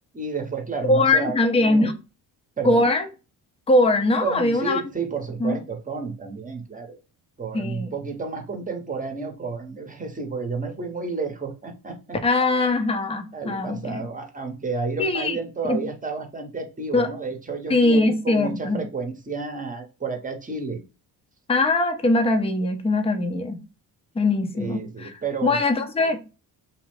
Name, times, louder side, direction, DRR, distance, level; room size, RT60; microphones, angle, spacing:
voice 1, 0.1-1.9 2.6-2.9 4.2-7.0 7.4-12.2 13.3-20.8 24.5-25.6, right 4 dB, 20° right, 0.8 m, -31 dB
voice 2, 0.9-1.9 2.6-3.1 3.7-4.8 5.4-5.6 7.5-7.9 12.2-14.0 15.0-15.4 15.6-15.8 16.9-17.1 17.7-18.8 21.5-23.6 24.2-25.1 25.4-26.3, left 2 dB, 15° left, 0.5 m, -21 dB
2.7 x 2.0 x 3.0 m
supercardioid pair, 65°, 44 cm